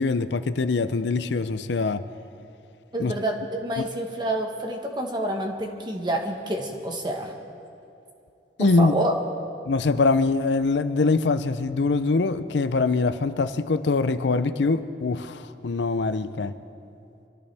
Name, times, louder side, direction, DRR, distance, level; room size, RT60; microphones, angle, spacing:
voice 1, 0.0-2.0 3.0-3.1 8.6-8.9 9.7-16.5, left 3 dB, 75° left, 11 dB, 0.5 m, -23 dB
voice 2, 2.9-7.3 8.6-9.1, right 1 dB, 25° right, 2 dB, 1.4 m, -28 dB
24.5 x 14.0 x 3.5 m, 2.8 s
head